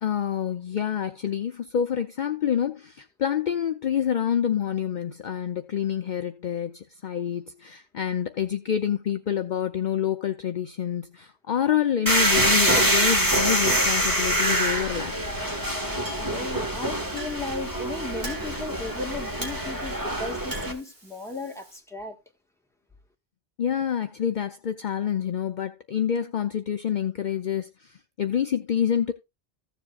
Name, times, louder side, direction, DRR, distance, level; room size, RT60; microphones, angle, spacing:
voice 1, 0.0-15.1 23.6-29.1, left 9 dB, 55° left, 0.7 m, -27 dB
sound 1, 12.1-20.7, right 1 dB, 20° right, 1.6 m, -25 dB
Chink clink, 13.5-21.8, right 1 dB, 65° right, 3.4 m, -45 dB
voice 2, 16.2-22.2, left 3 dB, 5° left, 1.6 m, -35 dB
15.0 x 7.4 x 2.4 m
omnidirectional pair, 1.1 m